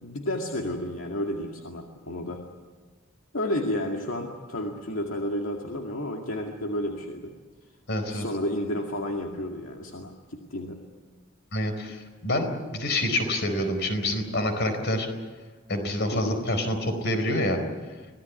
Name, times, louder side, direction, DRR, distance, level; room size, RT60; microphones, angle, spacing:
voice 1, 0.0-2.4 3.3-7.3 8.1-10.8 16.1-16.4, left 1 dB, 75° left, 1 dB, 2.2 m, -31 dB
voice 2, 7.9-8.3 11.5-15.1 15.7-17.6, left 1 dB, 55° left, 7 dB, 4.5 m, -27 dB
25.0 x 17.5 x 9.6 m, 1.4 s
head